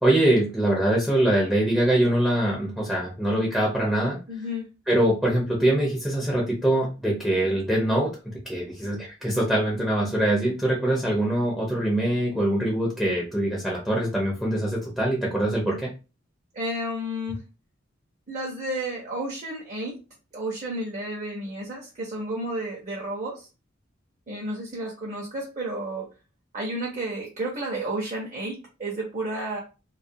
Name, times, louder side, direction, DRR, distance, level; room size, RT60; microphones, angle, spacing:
voice 1, 0.0-4.2 4.9-15.9, right 1 dB, ahead, -3 dB, 0.5 m, -23 dB
voice 2, 4.3-4.7 16.5-17.4 18.3-20.0 20.3-23.5 24.3-26.1 26.5-29.6, right 1 dB, 40° right, -2 dB, 0.6 m, -31 dB
2.3 x 2.1 x 2.6 m, 0.31 s
head